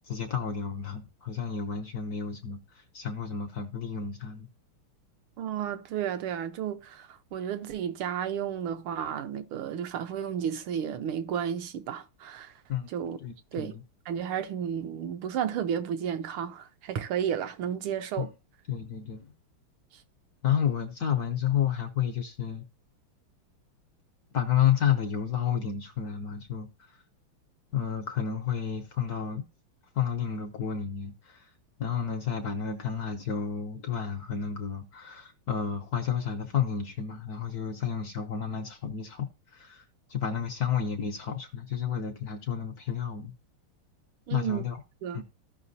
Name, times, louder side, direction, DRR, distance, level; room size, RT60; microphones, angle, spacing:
voice 1, 0.0-4.5 12.7-12.9 13.2-13.8 18.2-18.3 18.7-19.3 20.4-22.6 24.3-26.9 27.7-29.4 29.9-31.5 31.8-39.8 40.1-43.3 44.3-44.8 45.1-45.2, left 8 dB, 60° left, 1.0 m, -31 dB
voice 2, 5.4-12.5 12.9-13.2 13.5-13.8 14.1-18.3 44.3-44.6 45.0-45.2, right 9 dB, 80° right, 1.6 m, -32 dB
14.5 x 5.7 x 2.7 m
omnidirectional pair, 2.4 m